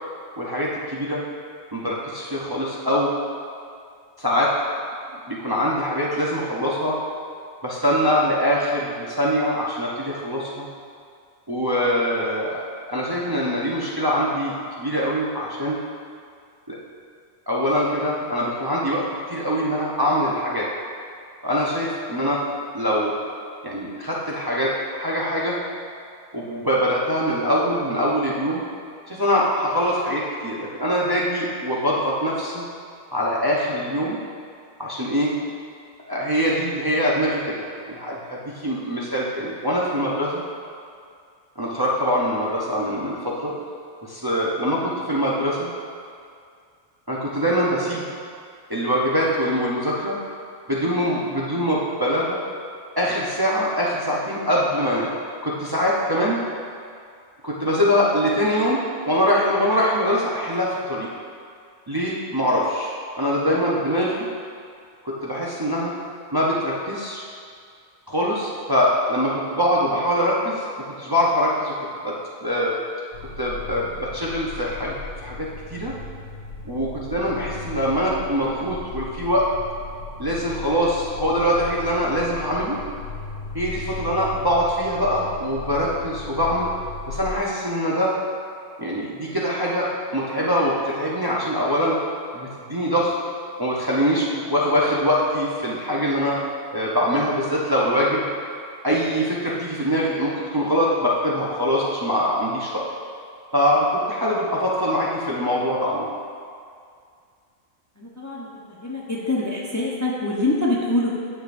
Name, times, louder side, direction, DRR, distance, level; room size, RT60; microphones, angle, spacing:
voice 1, 0.4-1.2 1.7-3.1 4.2-4.5 5.3-7.0 7.6-10.7 11.5-12.6 12.9-15.8 16.7-16.8 17.5-20.7 21.4-22.4 22.7-23.1 23.6-25.6 26.3-28.6 29.1-32.6 33.1-34.2 34.8-35.3 36.1-37.6 37.9-40.4 41.6-43.5 44.0-45.7 47.1-48.1 48.7-50.2 50.7-52.4 53.0-55.1 55.4-56.4 57.4-61.1 61.9-64.3 65.0-65.9 66.3-67.2 68.1-70.7 71.0-72.1 72.4-72.8 73.4-75.9 76.6-79.4 80.2-82.8 83.5-86.7 87.1-88.1 88.8-92.0 92.3-93.1 93.6-96.4 96.7-98.3 98.8-102.8 103.5-106.1, equal, 25° right, -6 dB, 0.7 m, -23 dB
sound 1, 73.1-87.4, left 3 dB, 75° left, 0.9 m, -37 dB
voice 2, 108.0-108.5 108.8-111.1, left 2 dB, 20° left, -4 dB, 0.7 m, -24 dB
9.4 x 6.9 x 2.6 m, 2.3 s
omnidirectional pair, 1.2 m